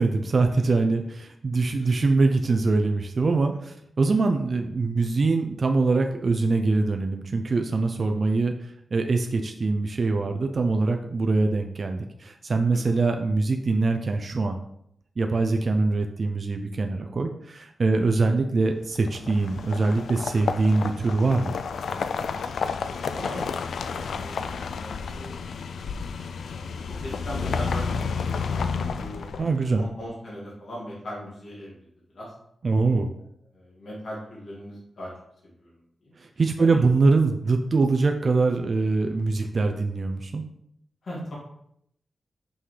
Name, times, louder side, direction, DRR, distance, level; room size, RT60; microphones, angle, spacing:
voice 1, 0.0-8.5 8.9-14.6 15.2-21.5 29.4-29.8 32.6-33.1 36.2-40.4, right 3 dB, 40° right, 4 dB, 0.4 m, -23 dB
sound 1, 19.0-29.8, left 5 dB, 85° left, 0.3 m, -31 dB
voice 2, 22.7-23.5 23.9-24.4 24.7-25.4 27.0-29.3 29.7-31.7 32.1-32.3 33.5-35.1 35.6-35.7 36.0-36.1 36.6-36.7 41.0-41.3, equal, 55° left, -6 dB, 2.2 m, -39 dB
5.6 x 5.5 x 3.3 m, 0.74 s
wide cardioid pair, 175°, 0 cm